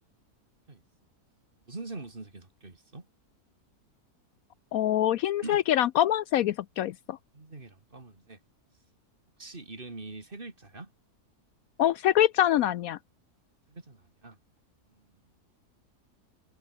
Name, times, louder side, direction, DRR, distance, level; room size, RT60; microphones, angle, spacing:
voice 1, 1.7-3.1 5.4-5.6 7.3-8.4 9.4-10.9 13.7-14.4 15.0-15.1, right 3 dB, 35° right, 2.8 m, -43 dB
voice 2, 4.7-7.2 11.8-13.0, left 12 dB, 70° left, 1.0 m, -24 dB
omnidirectional pair, 1.6 m